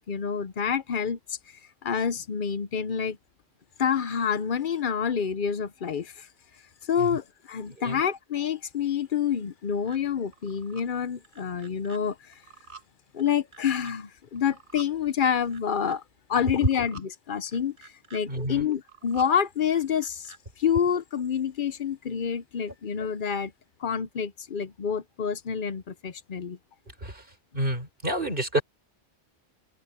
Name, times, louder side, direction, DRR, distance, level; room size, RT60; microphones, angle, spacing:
voice 1, 0.0-1.4 1.8-3.2 3.8-6.3 6.8-12.2 13.1-16.0 16.3-17.8 18.1-23.5 23.8-26.6, left 7 dB, 55° left, 0.8 m, -28 dB
voice 2, 7.7-8.0 18.3-18.7 27.0-27.3 27.5-28.6, right 1 dB, 50° right, 6.2 m, -29 dB
sound 1, 9.9-10.0 10.3-10.8 11.2-12.0 12.3-12.9 13.2-13.9 14.4-14.9 15.2-16.0 16.4-17.1 17.5-18.2 18.7-19.3 19.7-20.4, right 5 dB, 80° right, 6.1 m, -48 dB
omnidirectional pair, 1.1 m